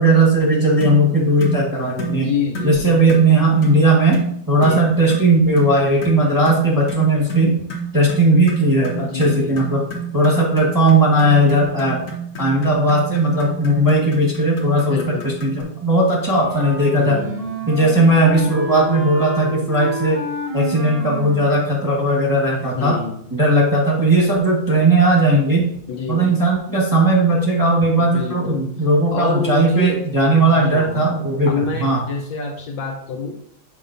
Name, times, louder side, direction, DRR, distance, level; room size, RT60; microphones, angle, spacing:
voice 1, 0.0-2.3 2.6-7.6 7.9-9.9 10.1-12.1 12.4-17.2 17.7-20.2 20.5-23.0 23.3-25.7 26.1-32.0, right 1 dB, 10° right, -3 dB, 1.1 m, -17 dB
sound 1, 0.8-1.0 1.4-1.6 2.0-2.2 2.6-2.7 3.1-3.3 3.6-3.8 4.1-4.3 4.6-4.8 5.1-5.3 5.6-5.7 6.0-15.6, right 3 dB, 50° left, 1.4 m, -29 dB
voice 2, 2.1-3.0 4.6-4.8 8.9-9.7 14.9-15.3 16.9-17.6 22.7-23.2 25.9-26.4 28.0-28.7 29.1-30.0 30.5-31.1 31.5-33.4, left 5 dB, 70° left, 2 dB, 1.3 m, -27 dB
Wind instrument woodwind instrument, 16.2-22.1, right 1 dB, 85° right, 0.3 m, -30 dB
7.7 x 5.2 x 2.6 m, 0.67 s
omnidirectional pair, 2.4 m